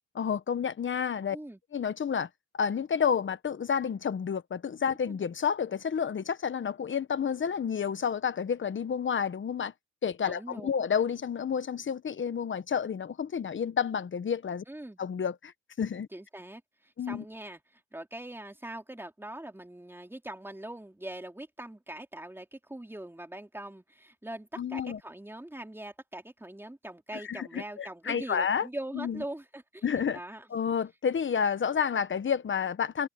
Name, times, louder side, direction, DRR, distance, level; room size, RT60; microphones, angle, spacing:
voice 1, 0.2-1.4 1.7-2.3 2.5-9.7 10.0-14.6 15.0-15.5 15.8-16.1 17.0-17.2 24.6-25.0 27.1-28.7 28.9-29.2 29.8-30.2 30.5-33.1, left 7 dB, 40° left, 1.3 m, -30 dB
voice 2, 1.3-1.6 5.1-5.2 10.3-10.7 14.7-15.0 16.1-29.9 30.1-30.5, right 1 dB, 5° right, 3.6 m, -42 dB
cardioid pair, 90°, 30 cm